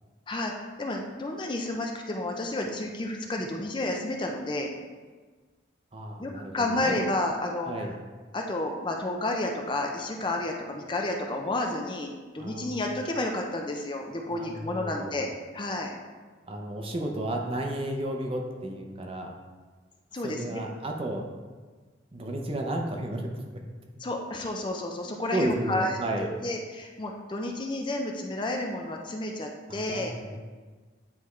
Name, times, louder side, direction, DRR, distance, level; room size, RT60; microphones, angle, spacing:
voice 1, 0.3-4.7 6.2-7.9 8.3-15.9 20.1-20.6 24.0-25.9 26.2-30.1, left 2 dB, 25° left, 2 dB, 0.5 m, -31 dB
voice 2, 5.9-7.0 7.7-7.9 12.4-12.9 14.3-15.2 16.5-19.3 20.2-21.3 22.1-23.3 25.0-26.3 29.7-30.4, right 1 dB, 30° right, 2 dB, 0.6 m, -33 dB
9.4 x 3.5 x 3.2 m, 1.4 s
head